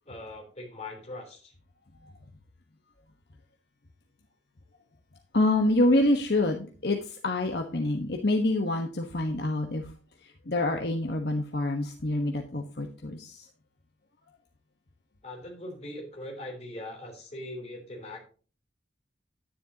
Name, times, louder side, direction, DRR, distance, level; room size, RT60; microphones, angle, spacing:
voice 1, 0.0-1.5 15.2-18.2, left 1 dB, 35° left, 1 dB, 3.4 m, -41 dB
voice 2, 5.3-9.9 10.2-13.5, left 2 dB, 60° left, 3 dB, 1.2 m, -27 dB
10.0 x 10.0 x 2.8 m, 0.38 s
head